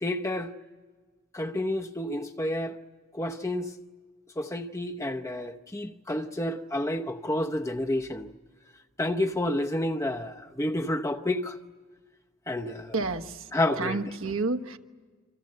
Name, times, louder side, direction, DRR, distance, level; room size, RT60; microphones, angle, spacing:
voice 1, 0.0-0.5 1.3-2.8 3.1-3.7 4.4-8.3 9.0-11.6 12.5-12.9 13.5-14.0, left 1 dB, 15° left, 0.8 m, -30 dB
voice 2, 12.9-14.8, right 3 dB, 65° right, 1.4 m, -31 dB
28.0 x 26.5 x 7.8 m
head